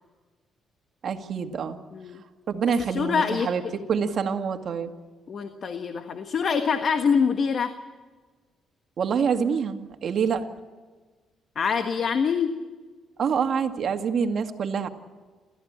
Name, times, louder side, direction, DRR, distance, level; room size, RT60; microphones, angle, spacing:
voice 1, 1.0-1.8 2.5-4.9 9.0-10.5 13.2-14.9, right 6 dB, 60° right, 5 dB, 2.0 m, -26 dB
voice 2, 1.9-2.2 2.9-3.5 5.3-7.7 11.5-12.6, left 6 dB, 55° left, 7 dB, 1.5 m, -25 dB
29.0 x 14.0 x 8.9 m, 1.4 s
cardioid pair, 90°, 0 cm